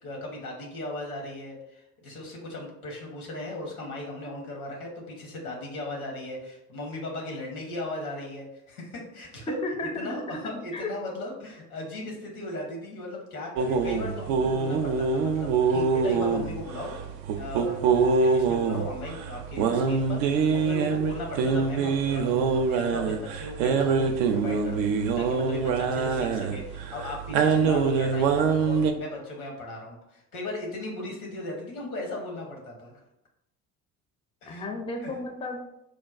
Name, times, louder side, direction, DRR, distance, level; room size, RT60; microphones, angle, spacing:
voice 1, 0.0-9.6 10.0-16.9 17.3-17.9 18.2-32.9 34.4-34.6 35.0-35.2, left 2 dB, 80° left, 0 dB, 1.0 m, -37 dB
voice 2, 9.6-10.4 10.7-10.9 34.5-35.6, left 2 dB, 15° left, 3 dB, 0.5 m, -33 dB
sound 1, 13.6-28.9, right 5 dB, 60° right, 0.5 m, -25 dB
4.6 x 2.2 x 2.4 m, 0.84 s
figure-of-eight pair, 60°, 44 cm